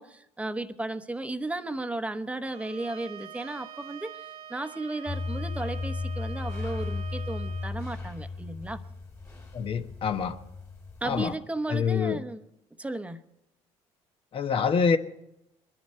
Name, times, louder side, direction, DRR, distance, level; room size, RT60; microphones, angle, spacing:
voice 1, 0.0-8.8 11.0-12.4 12.8-13.2, right 2 dB, 10° right, 9 dB, 1.0 m, -34 dB
Bowed string instrument, 2.4-7.8, right 8 dB, 65° right, 0.8 m, -45 dB
sound 1, 5.1-11.3, left 3 dB, 20° left, 2.1 m, -35 dB
voice 2, 9.5-10.4 11.0-11.3 11.7-12.2 14.3-15.0, left 6 dB, 50° left, 8 dB, 1.1 m, -26 dB
23.0 x 10.5 x 4.4 m, 0.85 s
supercardioid pair, 85°, 12 cm